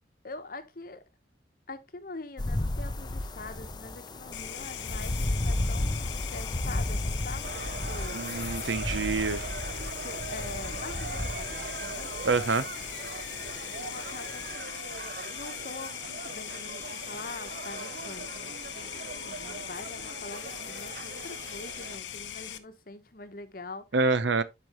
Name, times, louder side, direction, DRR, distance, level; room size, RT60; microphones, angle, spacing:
voice 1, 0.2-1.0 1.7-8.4 10.0-12.1 13.5-23.9, left 3 dB, 50° left, 1.0 m, -44 dB
sound 1, 2.4-14.6, left 1 dB, 25° left, 0.6 m, -34 dB
sound 2, 4.3-22.6, left 10 dB, 90° left, 0.9 m, -40 dB
sound 3, 7.4-22.0, right 5 dB, 55° right, 0.5 m, -42 dB
voice 2, 8.1-9.4 12.2-12.7 23.9-24.4, right 4 dB, 85° right, 0.8 m, -26 dB
12.0 x 4.6 x 3.0 m
head